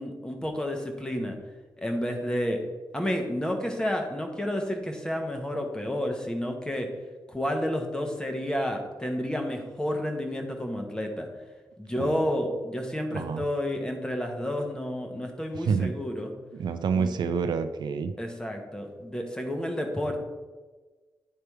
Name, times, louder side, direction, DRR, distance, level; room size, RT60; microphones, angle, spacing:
voice 1, 0.0-1.4 1.8-2.6 2.9-6.9 7.3-11.3 11.8-16.3 16.9-17.1 18.2-20.2, equal, 10° left, 3 dB, 0.9 m, -30 dB
voice 2, 13.1-13.5 15.5-15.9 16.5-18.1, right 5 dB, 65° right, 10 dB, 0.4 m, -28 dB
9.8 x 3.4 x 4.5 m, 1.3 s
wide cardioid pair, 140°, 8 cm